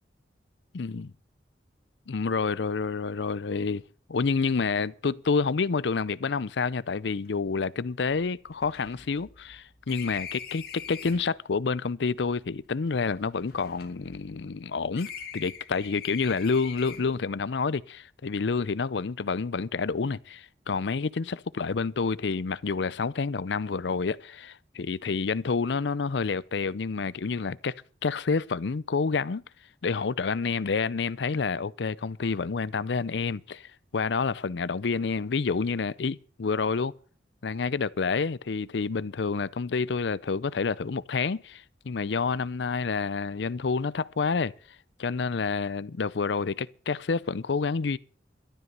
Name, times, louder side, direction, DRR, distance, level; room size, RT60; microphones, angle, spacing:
voice 1, 0.7-1.1 2.1-3.8 4.1-29.4 29.8-36.9 37.4-44.5 45.0-48.0, left 4 dB, 70° left, 0.5 m, -28 dB
sound 1, 7.2-7.3 7.6-7.7 8.1-11.4 12.2-14.6 14.9-17.3, left 7 dB, 55° left, 2.2 m, -43 dB
12.5 x 11.0 x 6.7 m
head